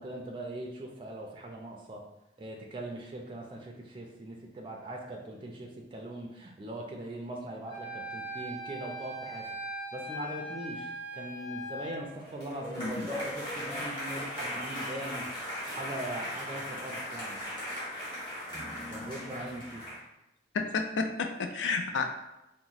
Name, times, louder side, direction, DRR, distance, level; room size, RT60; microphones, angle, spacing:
voice 1, 0.0-2.0 2.4-9.5 9.9-15.3 15.7-17.4 18.9-19.8, right 1 dB, 25° right, 0 dB, 0.3 m, -41 dB
Wind instrument woodwind instrument, 7.7-12.0, right 1 dB, 5° left, 0.7 m, -40 dB
sound 1, 12.1-20.0, left 1 dB, 25° left, 1.2 m, -38 dB
voice 2, 20.5-22.1, left 4 dB, 85° left, 6 dB, 0.4 m, -30 dB
2.9 x 2.0 x 3.9 m, 0.91 s
head